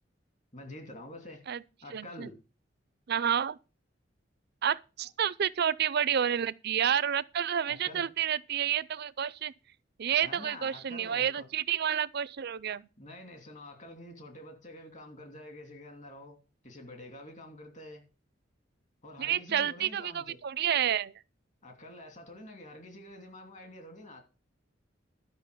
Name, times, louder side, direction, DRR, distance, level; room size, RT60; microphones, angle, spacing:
voice 1, 0.5-1.4 1.8-2.4 7.7-8.0 10.2-11.5 13.0-16.4 16.6-18.0 19.0-20.4 21.6-24.2, left 1 dB, 40° left, 2.8 m, -47 dB
voice 2, 1.9-2.3 3.1-3.6 4.6-9.5 10.0-12.9 19.2-21.1, right 9 dB, 55° right, 0.5 m, -30 dB
12.0 x 5.7 x 6.9 m
head